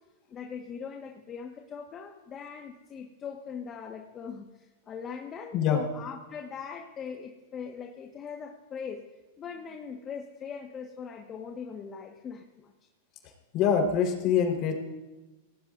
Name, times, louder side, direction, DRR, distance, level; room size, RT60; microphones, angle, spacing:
voice 1, 0.3-9.0 9.4-12.7, left 6 dB, 30° left, 1 dB, 1.6 m, -41 dB
voice 2, 13.5-14.7, left 7 dB, 45° left, 1 dB, 4.4 m, -24 dB
26.5 x 18.5 x 2.7 m, 1.1 s
hypercardioid pair, 120°, 0 cm